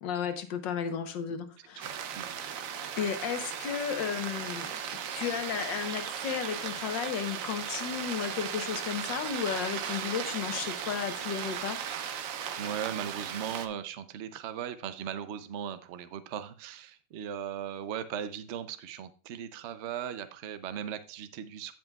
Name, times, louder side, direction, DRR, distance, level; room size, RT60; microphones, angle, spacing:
voice 1, 0.0-1.9 3.0-4.8 5.1-11.8, left 7 dB, 85° left, 8 dB, 1.6 m, -33 dB
voice 2, 1.7-2.4 12.6-21.7, right 9 dB, 80° right, 11 dB, 0.6 m, -38 dB
sound 1, 1.8-13.7, right 8 dB, 60° right, 1.0 m, -37 dB
16.0 x 5.4 x 2.3 m, 0.37 s
omnidirectional pair, 1.9 m